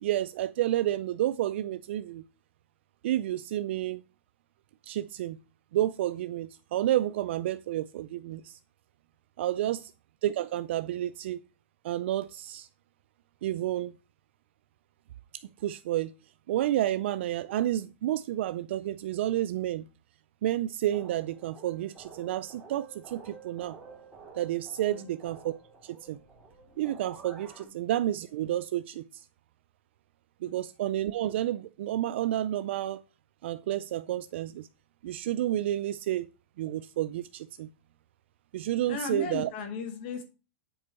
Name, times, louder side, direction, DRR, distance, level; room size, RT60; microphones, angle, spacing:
voice 1, 0.0-2.2 3.0-4.0 4.8-5.4 5.7-8.6 9.4-9.9 10.2-11.4 11.8-12.7 13.4-13.9 15.3-16.1 16.5-19.9 20.4-23.8 24.3-25.5 25.8-26.2 26.8-29.3 30.4-33.0 33.4-34.7 35.0-36.3 36.6-37.7 38.5-39.5, right 13 dB, 60° right, 0.4 m, -30 dB
sound 1, 20.9-27.6, right 5 dB, 5° right, 2.2 m, -50 dB
voice 2, 24.9-25.2 27.6-27.7 30.4-30.6 38.9-40.2, left 6 dB, 50° left, 1.6 m, -36 dB
7.8 x 4.6 x 4.3 m
supercardioid pair, 155°, 7 cm